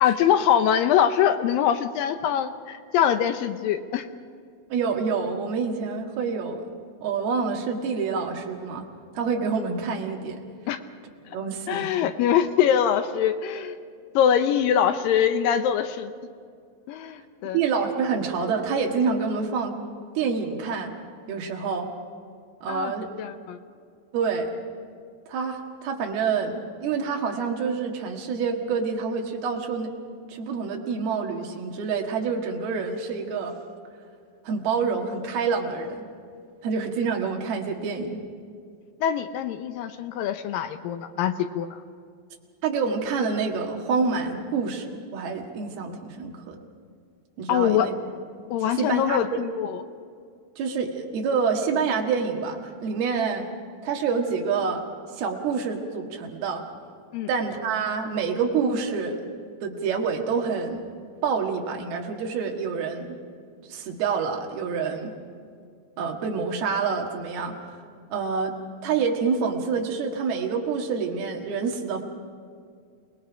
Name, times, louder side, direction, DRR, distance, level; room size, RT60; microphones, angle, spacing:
voice 1, 0.0-4.1 10.7-10.8 11.3-11.4 11.7-13.8 14.1-16.1 16.9-17.6 22.7-22.9 23.2-23.6 39.0-41.8 47.5-47.9 48.5-49.8 57.1-57.3, left 9 dB, 75° left, 9 dB, 2.3 m, -23 dB
voice 2, 4.7-6.7 7.0-8.9 9.2-10.4 11.3-11.9 17.5-19.8 20.2-20.9 21.3-21.9 22.6-23.1 24.1-24.5 25.3-29.9 30.3-33.6 34.5-36.1 36.6-38.2 42.6-46.6 47.4-47.9 48.8-49.4 50.6-53.5 53.8-54.8 55.1-56.6 57.3-59.2 59.6-60.8 61.2-63.1 63.7-65.1 66.0-67.6 68.1-68.5 68.8-72.0, right 5 dB, 90° right, 2 dB, 3.7 m, -27 dB
28.0 x 20.0 x 5.1 m, 2.2 s
omnidirectional pair, 4.3 m